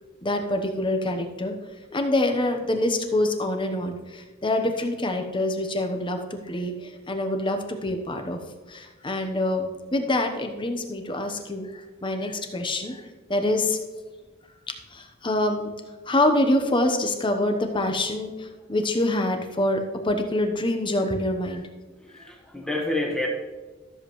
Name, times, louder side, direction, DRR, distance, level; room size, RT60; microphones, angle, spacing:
voice 1, 0.2-1.5 1.9-8.4 8.7-13.0 13.3-13.8 14.9-15.7 16.1-21.6, left 1 dB, 25° left, 5 dB, 1.0 m, -26 dB
voice 2, 22.1-23.3, left 2 dB, 5° left, 0 dB, 1.4 m, -28 dB
13.5 x 7.3 x 3.1 m, 1.3 s
head